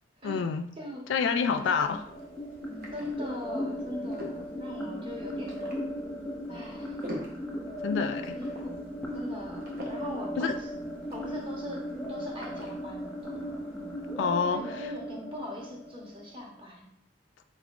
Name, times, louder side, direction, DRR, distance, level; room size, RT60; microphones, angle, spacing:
voice 1, 0.2-0.6 1.1-2.0 7.8-8.4 10.4-10.5 14.2-14.6, left 5 dB, 70° left, 8 dB, 0.3 m, -27 dB
voice 2, 0.8-1.1 1.5-2.0 2.9-5.6 6.5-7.0 8.3-8.8 9.1-10.7 11.1-13.5 14.5-16.9, left 1 dB, 30° right, -1 dB, 0.9 m, -41 dB
sound 1, 1.4-14.3, equal, 50° right, 0.8 m, -48 dB
sound 2, 1.5-16.5, equal, ahead, 0.7 m, -37 dB
4.2 x 3.6 x 2.4 m, 0.70 s
head